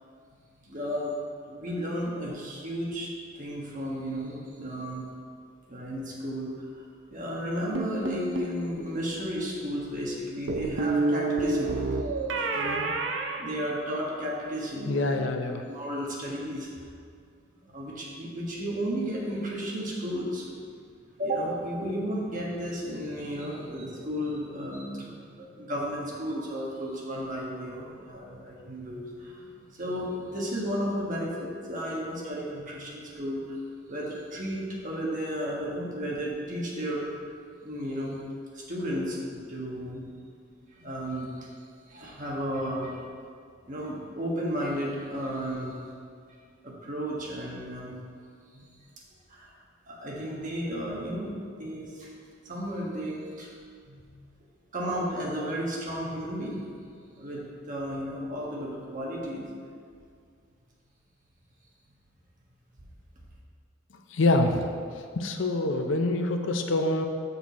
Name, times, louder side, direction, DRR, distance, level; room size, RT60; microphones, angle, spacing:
voice 1, 0.6-1.1 1.5-5.1 5.7-11.8 12.5-12.9 13.4-15.2 15.6-16.9 17.6-20.5 21.2-33.6 33.9-37.2 37.6-38.2 38.5-40.1 40.7-41.5 41.9-43.1 43.6-45.9 46.6-48.0 48.5-48.7 49.3-49.5 49.9-52.1 52.4-53.5 53.9-54.3 54.7-56.6 57.2-59.6, equal, 40° right, -3 dB, 1.4 m, -33 dB
sound 1, 7.8-8.6 10.5-14.2, right 3 dB, 70° right, 0.6 m, -29 dB
voice 2, 14.9-15.6 64.1-64.6 65.2-67.1, left 2 dB, 75° left, 5 dB, 0.6 m, -25 dB
6.9 x 6.1 x 4.1 m, 2.2 s
head